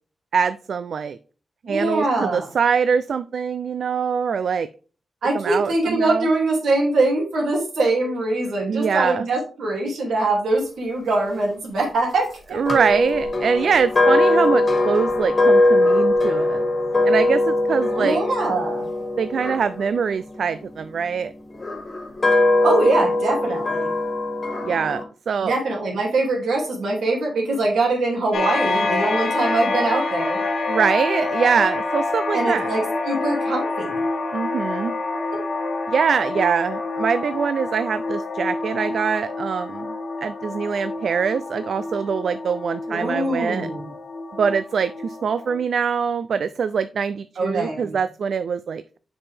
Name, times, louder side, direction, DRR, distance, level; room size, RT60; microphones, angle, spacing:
voice 1, 0.3-1.2 1.7-4.7 5.3-6.3 8.7-9.3 12.5-16.7 17.1-18.2 19.2-21.3 24.6-25.5 30.7-32.7 34.3-34.9 35.9-39.9 40.2-43.7 44.3-49.0, right 6 dB, 70° right, 13 dB, 0.3 m, -23 dB
voice 2, 1.6-2.5 5.2-12.6 17.9-18.9 22.6-23.9 25.4-30.4 32.3-34.0 42.9-43.8 47.4-48.0, right 2 dB, 85° right, -1 dB, 2.6 m, -23 dB
sound 1, 12.7-20.8 21.5-25.0, left 2 dB, 35° left, 1.6 m, -21 dB
sound 2, 28.3-45.6, left 3 dB, 80° left, 1.5 m, -27 dB
7.0 x 5.2 x 3.4 m, 0.38 s
wide cardioid pair, 115°, 0 cm